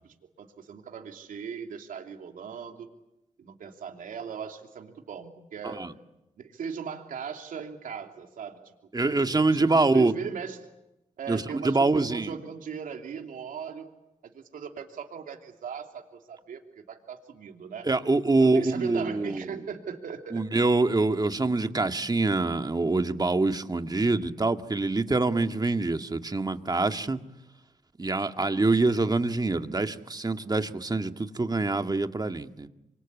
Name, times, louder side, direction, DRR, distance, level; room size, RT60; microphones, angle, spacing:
voice 1, 0.4-2.9 3.4-5.9 6.4-8.6 9.0-10.6 11.2-13.9 14.2-16.6 16.9-17.9 18.4-20.4, right 6 dB, 80° right, 4 dB, 3.1 m, -38 dB
voice 2, 8.9-10.1 11.3-12.3 17.8-19.4 20.3-27.2 28.0-32.7, right 3 dB, 30° right, 7 dB, 2.0 m, -25 dB
27.5 x 24.5 x 8.6 m, 0.95 s
cardioid pair, 50°, 14 cm